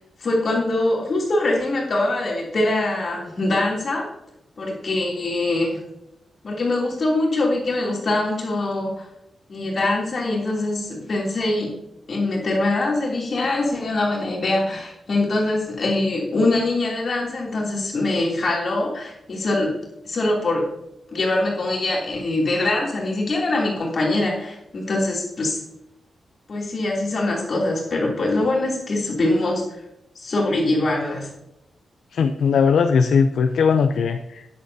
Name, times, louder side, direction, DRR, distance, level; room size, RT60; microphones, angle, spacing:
voice 1, 0.2-4.0 4.6-5.8 6.4-9.0 9.5-11.7 12.1-19.7 20.0-20.6 21.1-25.6 26.5-29.6 30.1-31.3, left 2 dB, 45° left, -3 dB, 3.1 m, -23 dB
voice 2, 32.1-34.5, left 6 dB, 90° left, 7 dB, 0.6 m, -19 dB
15.0 x 9.9 x 2.8 m, 0.86 s
wide cardioid pair, 170°, 0 cm